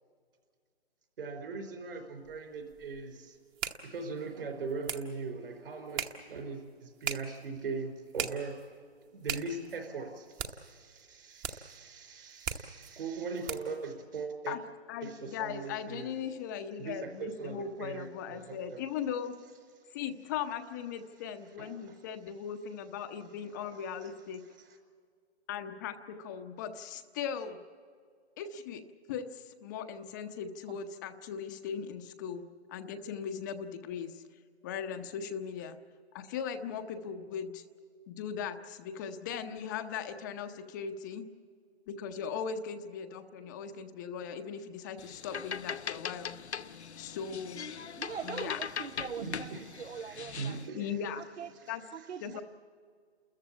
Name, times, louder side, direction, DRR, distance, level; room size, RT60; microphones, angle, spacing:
voice 1, 1.2-3.3 3.8-8.6 9.1-14.6 15.0-16.2 16.8-18.8 21.6-22.0 49.2-50.9 51.7-51.8, right 4 dB, 60° right, 4 dB, 4.8 m, -40 dB
sound 1, 2.2-13.8, right 8 dB, 20° right, 1.0 m, -42 dB
voice 2, 14.9-19.3 19.9-24.4 25.5-27.6 28.4-28.8 29.1-32.4 32.7-34.2 34.6-35.8 36.1-37.6 38.1-41.3 41.9-46.4 47.0-47.7 48.2-48.6 50.7-51.2 51.7-51.8 52.2-52.4, left 7 dB, 15° left, 9 dB, 0.7 m, -38 dB
sound 2, 45.0-50.7, left 7 dB, 85° left, 0.9 m, -40 dB
voice 3, 48.0-50.8 51.2-51.5 51.9-52.4, right 7 dB, 75° right, 11 dB, 0.9 m, -42 dB
29.5 x 14.0 x 8.5 m, 2.1 s
hypercardioid pair, 150°, 33 cm